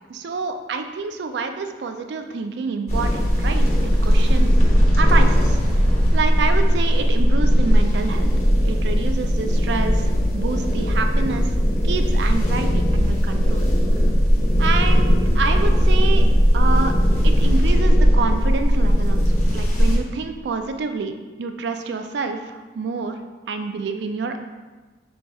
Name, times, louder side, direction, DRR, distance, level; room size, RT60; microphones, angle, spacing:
voice 1, 0.1-4.6 5.0-5.6 6.1-8.3 8.6-11.5 11.8-13.7 14.6-16.3 16.5-16.9 17.2-21.1 21.4-23.2 23.5-24.4, right 4 dB, 80° right, 7 dB, 0.4 m, -28 dB
sound 1, 2.9-20.0, equal, 40° left, 0.7 m, -18 dB
5.7 x 3.8 x 2.3 m, 1.3 s
head